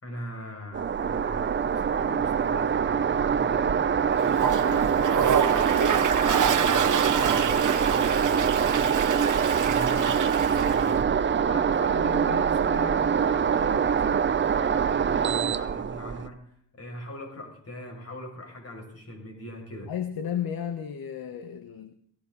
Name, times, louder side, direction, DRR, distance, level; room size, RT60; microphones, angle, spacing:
voice 1, 0.0-5.7 6.2-9.0 9.4-19.9, left 1 dB, 35° left, 6.5 m, -40 dB
sound 1, 0.7-16.3, right 7 dB, 25° right, 0.6 m, -24 dB
Toilet flush, 4.2-11.0, right 8 dB, 45° right, 1.3 m, -28 dB
voice 2, 19.9-21.9, left 9 dB, 55° left, 1.3 m, -33 dB
18.5 x 16.0 x 4.0 m
cardioid pair, 125°, 42 cm